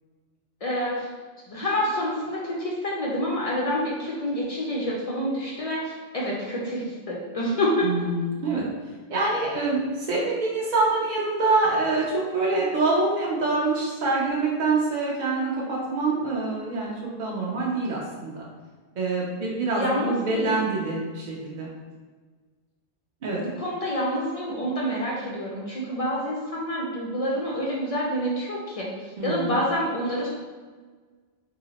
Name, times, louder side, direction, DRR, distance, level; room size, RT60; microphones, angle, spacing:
voice 1, 0.6-1.1 1.5-7.9 19.8-20.6 23.3-30.3, equal, 70° left, -4 dB, 0.3 m, -28 dB
voice 2, 7.8-8.6 9.1-12.1 12.3-18.5 19.0-21.7 23.2-23.4 29.2-29.6, right 3 dB, 55° right, -5 dB, 0.5 m, -25 dB
2.7 x 2.0 x 3.9 m, 1.4 s
omnidirectional pair, 1.2 m